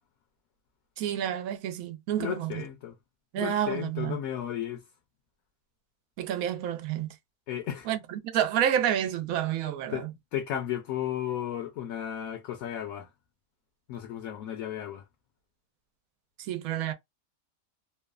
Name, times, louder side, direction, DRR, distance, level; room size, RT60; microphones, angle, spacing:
voice 1, 1.0-2.6 3.3-4.2 6.2-7.1 7.9-10.1 16.4-16.9, right 10 dB, 80° right, 1.0 m, -29 dB
voice 2, 2.2-2.9 3.4-4.8 7.5-7.9 9.9-13.1 13.9-15.0, left 11 dB, 75° left, 1.0 m, -34 dB
3.0 x 2.1 x 2.3 m
omnidirectional pair, 1.5 m